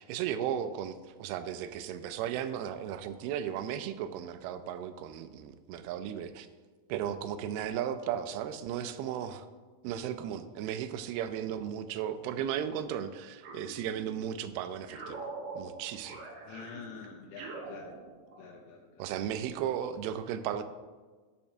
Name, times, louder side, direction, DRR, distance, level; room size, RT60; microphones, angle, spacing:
voice 1, 0.0-6.5 6.9-9.5 9.8-16.3 19.0-20.6, right 9 dB, 90° right, 10 dB, 2.5 m, -35 dB
sound 1, 13.4-14.4 14.9-18.5, right 3 dB, 70° right, 2.7 m, -44 dB
voice 2, 16.5-17.9 18.4-19.0, left 5 dB, 75° left, 0 dB, 2.1 m, -47 dB
12.5 x 6.8 x 2.6 m, 1.4 s
omnidirectional pair, 4.4 m